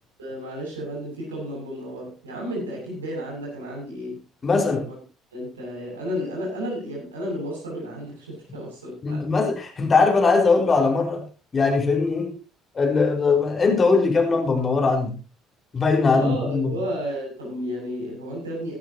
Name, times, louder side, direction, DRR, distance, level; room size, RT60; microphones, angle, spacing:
voice 1, 0.2-4.2 4.8-5.0 5.3-9.3 16.1-18.8, equal, 80° right, -2 dB, 7.7 m, -32 dB
voice 2, 4.4-4.9 9.0-11.2 11.5-12.4 12.7-15.2 15.7-16.8, left 4 dB, 35° left, 2 dB, 5.0 m, -20 dB
17.5 x 12.5 x 3.0 m, 0.32 s
figure-of-eight pair, 55°, 0 cm